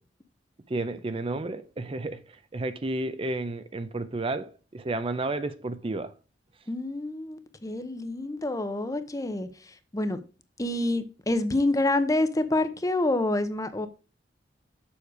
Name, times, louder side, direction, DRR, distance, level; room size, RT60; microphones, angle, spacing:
voice 1, 0.7-2.2 2.5-6.1, right 2 dB, 30° right, 0.5 m, -31 dB
voice 2, 6.7-10.2 10.6-13.9, left 2 dB, 20° left, 0.7 m, -27 dB
7.1 x 6.6 x 4.7 m
head